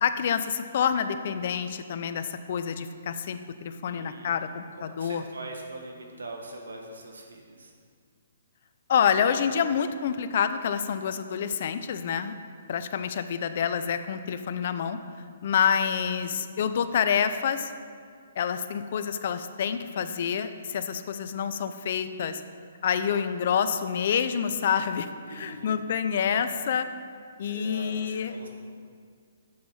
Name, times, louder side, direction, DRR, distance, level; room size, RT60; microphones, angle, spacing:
voice 1, 0.0-5.2 8.9-12.3 12.7-15.0 15.4-17.7 18.4-22.4 22.8-26.9 27.4-28.3, left 7 dB, 55° left, 10 dB, 0.5 m, -27 dB
voice 2, 3.8-4.3 4.7-7.7 25.3-25.7 27.4-28.5, right 2 dB, 90° right, 2 dB, 1.6 m, -42 dB
7.7 x 7.3 x 5.6 m, 2.1 s
hypercardioid pair, 145°, 0 cm